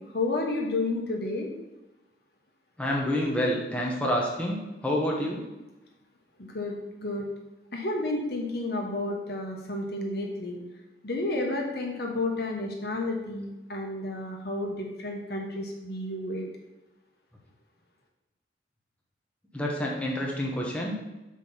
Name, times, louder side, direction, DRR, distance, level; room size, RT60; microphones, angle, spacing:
voice 1, 0.0-1.5 6.4-7.3 7.7-10.6 11.0-16.4, left 2 dB, 60° left, 1 dB, 1.3 m, -31 dB
voice 2, 2.8-5.4 19.5-21.0, equal, 5° left, -3 dB, 1.1 m, -28 dB
6.1 x 4.9 x 5.6 m, 1.0 s
head